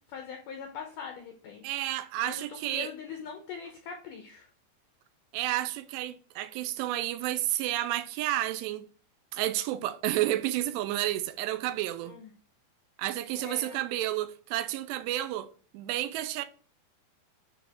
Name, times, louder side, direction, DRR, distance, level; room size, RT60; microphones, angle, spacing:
voice 1, 0.1-1.6 2.2-4.5 12.0-12.3 13.4-13.8, left 6 dB, 80° left, 1.9 m, -42 dB
voice 2, 1.6-2.9 5.3-8.9 9.3-12.2 13.0-15.5 15.7-16.5, right 14 dB, 85° right, 2.7 m, -31 dB
9.5 x 3.6 x 3.5 m
omnidirectional pair, 4.9 m